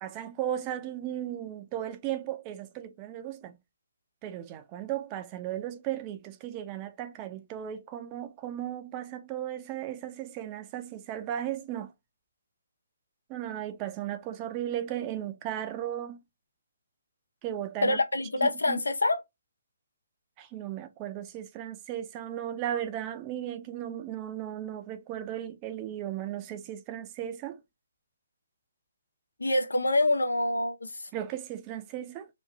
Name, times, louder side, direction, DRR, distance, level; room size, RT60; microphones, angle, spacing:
voice 1, 0.0-3.6 4.2-11.9 13.3-16.2 17.4-18.0 18.4-18.8 20.4-27.6 31.1-32.3, right 11 dB, 25° right, 0.5 m, -36 dB
voice 2, 17.8-19.2 29.4-31.1, left 2 dB, 85° left, 0.7 m, -26 dB
3.0 x 2.3 x 3.5 m
figure-of-eight pair, 140°, 0 cm